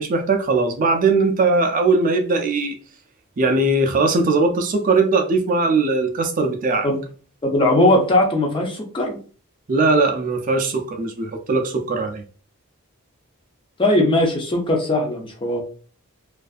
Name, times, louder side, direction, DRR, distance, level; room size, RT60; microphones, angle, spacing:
voice 1, 0.0-2.8 3.4-6.9 9.7-12.2, right 3 dB, 40° right, 0.4 m, -19 dB
voice 2, 7.4-9.2 13.8-15.6, left 1 dB, 25° left, 0.5 m, -19 dB
2.5 x 2.4 x 2.3 m
head